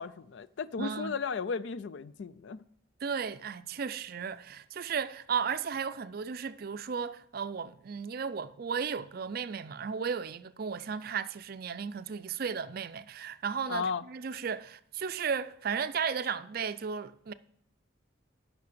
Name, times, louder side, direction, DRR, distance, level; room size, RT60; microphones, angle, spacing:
voice 1, 0.0-2.6 13.7-14.1, left 5 dB, 65° left, 0.4 m, -35 dB
voice 2, 0.8-1.1 3.0-17.3, right 6 dB, 50° right, 0.4 m, -35 dB
9.4 x 5.8 x 6.8 m
head